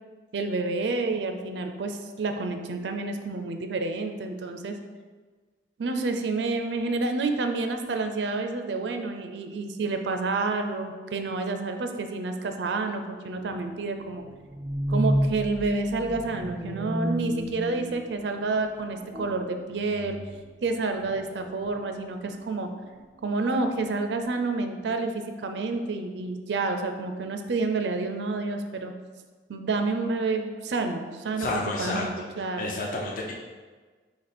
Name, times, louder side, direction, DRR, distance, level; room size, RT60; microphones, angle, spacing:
voice 1, 0.3-4.8 5.8-14.2 14.9-20.2 20.6-22.7 23.2-28.9 29.5-32.7, right 3 dB, 80° right, 6 dB, 0.4 m, -29 dB
sound 1, 13.4-18.5 19.0-19.5 19.9-20.5 21.0-21.2 21.6-21.7, equal, 15° right, 0.3 m, -31 dB
voice 2, 31.4-32.3 32.6-33.3, left 2 dB, 50° left, -1 dB, 0.5 m, -30 dB
4.2 x 2.8 x 4.2 m, 1.4 s
head